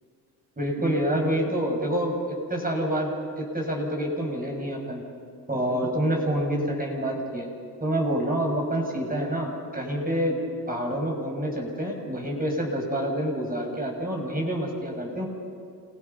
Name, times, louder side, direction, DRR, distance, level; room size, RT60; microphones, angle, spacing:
voice 1, 0.6-5.0 5.5-7.5 7.8-10.4 10.7-15.3, right 1 dB, 20° right, 0 dB, 6.7 m, -27 dB
28.5 x 17.5 x 5.7 m, 2.6 s
supercardioid pair, 60°, 44 cm